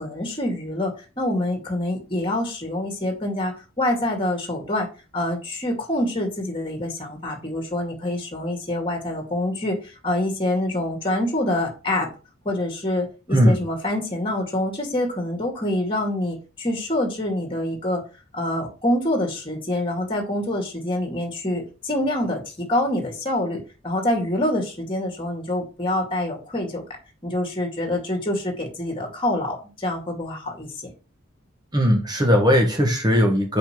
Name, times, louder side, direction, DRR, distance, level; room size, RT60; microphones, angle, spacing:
voice 1, 0.0-4.9 5.1-12.1 12.4-18.0 18.3-26.8 27.2-30.9, left 1 dB, 25° left, 2 dB, 2.2 m, -26 dB
voice 2, 31.7-33.6, equal, 20° right, 2 dB, 1.4 m, -18 dB
5.7 x 5.2 x 6.0 m, 0.33 s
head